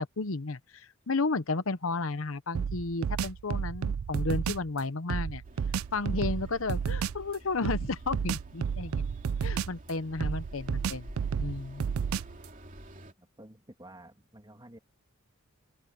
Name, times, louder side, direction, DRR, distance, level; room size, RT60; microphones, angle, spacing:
voice 1, 0.0-5.4 5.9-9.0 9.4-11.1 11.4-11.8, left 3 dB, 75° left, 0.9 m, -33 dB
sound 1, 2.5-4.7 5.1-7.2 7.6-9.9 10.2-12.4, right 6 dB, 80° right, 0.4 m, -31 dB
sound 2, 5.4-13.1, right 1 dB, 40° right, 2.9 m, -48 dB
voice 2, 13.0-14.8, right 1 dB, 20° right, 2.7 m, -52 dB
open air
head